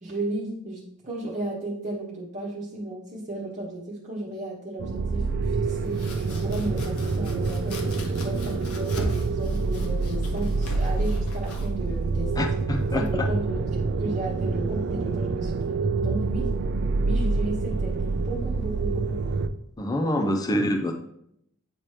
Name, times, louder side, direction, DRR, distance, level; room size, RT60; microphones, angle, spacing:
voice 1, 0.0-12.6 12.9-16.5 17.0-19.2 20.1-20.3, right 1 dB, 35° right, -4 dB, 1.0 m, -34 dB
sound 1, 4.8-19.5, right 3 dB, 50° right, 0.4 m, -27 dB
Domestic sounds home sounds, 5.7-13.4, left 1 dB, 85° left, 1.1 m, -40 dB
voice 2, 12.4-13.3 19.8-20.9, left 1 dB, 15° left, 4 dB, 0.4 m, -26 dB
8.6 x 2.9 x 4.9 m, 0.74 s
head